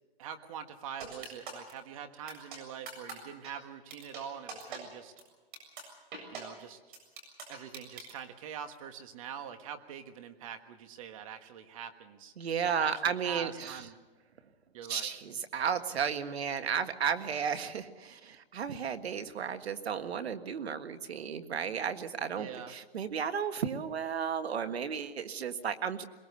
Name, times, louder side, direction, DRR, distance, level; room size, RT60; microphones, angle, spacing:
voice 1, 0.2-5.1 6.3-6.8 7.5-12.3 12.6-14.0 14.7-15.1 22.4-22.7, right 8 dB, 35° right, 9 dB, 1.4 m, -44 dB
sound 1, 1.0-1.7 2.3-2.6 2.9-3.1 3.4-3.5 3.9-4.2 4.5-4.8 5.2-5.3 5.5-5.8 6.1-6.4 6.9-8.1, right 4 dB, 55° right, 7.3 m, -42 dB
voice 2, 12.4-13.8 14.9-26.1, right 7 dB, 90° right, 9 dB, 1.7 m, -33 dB
22.0 x 21.0 x 6.8 m, 1.3 s
hypercardioid pair, 170°, 31 cm